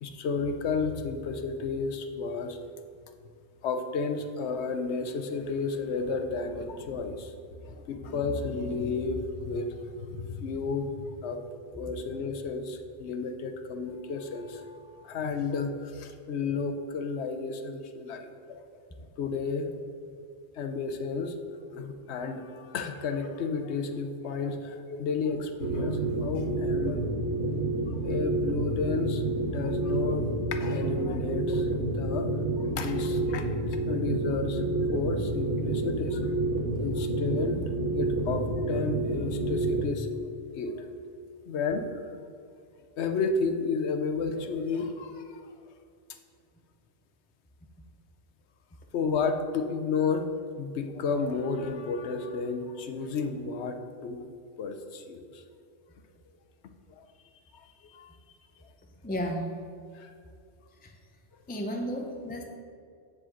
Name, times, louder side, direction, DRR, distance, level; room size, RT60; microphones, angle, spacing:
voice 1, 0.0-2.6 3.6-7.3 7.6-11.4 11.7-18.6 19.2-19.7 20.5-21.4 21.7-27.0 27.9-32.3 32.6-33.5 33.8-34.6 34.9-36.3 36.7-37.6 37.9-40.1 40.5-40.9 41.5-42.1 43.0-45.4 48.9-50.3 50.5-54.3 54.6-55.4 57.0-57.1 57.5-58.1 59.9-60.1, left 4 dB, 75° left, 6 dB, 1.0 m, -32 dB
sound 1, 25.6-39.8, right 2 dB, 90° right, 1.3 m, -29 dB
voice 2, 59.0-59.6 60.8-61.0 61.5-62.4, equal, 15° left, 2 dB, 0.4 m, -33 dB
7.8 x 7.5 x 3.8 m, 2.4 s
omnidirectional pair, 1.2 m